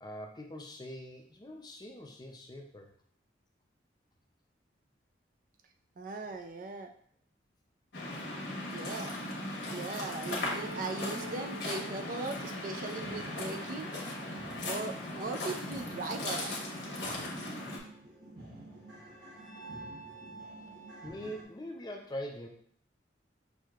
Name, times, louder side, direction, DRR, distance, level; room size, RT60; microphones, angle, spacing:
voice 1, 0.0-2.9 20.4-20.5 21.0-22.5, equal, 20° left, 2 dB, 0.5 m, -43 dB
voice 2, 6.0-6.9 8.7-9.1 9.7-13.9 14.5-16.6, right 3 dB, 45° right, 6 dB, 0.3 m, -39 dB
Waves surf, 7.9-17.8, left 1 dB, 65° left, 1.1 m, -38 dB
sound 1, 10.3-17.7 18.0-18.1 18.2-18.3 18.7-21.1, right 2 dB, ahead, 0.8 m, -50 dB
sound 2, 12.4-21.4, right 1 dB, 70° right, 1.1 m, -51 dB
6.1 x 2.7 x 2.4 m, 0.63 s
head